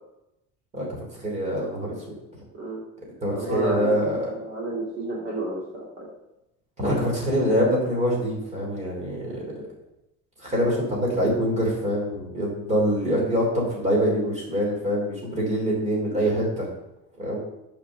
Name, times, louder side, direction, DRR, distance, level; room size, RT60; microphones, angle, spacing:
voice 1, 1.1-2.2 3.2-4.3 6.8-9.4 10.4-16.6 17.2-17.4, equal, 25° right, -3 dB, 3.3 m, -24 dB
voice 2, 2.5-2.8 3.3-6.1, right 1 dB, 40° right, -4 dB, 2.5 m, -31 dB
7.2 x 5.2 x 6.5 m, 0.89 s
cardioid pair, 165°, 29 cm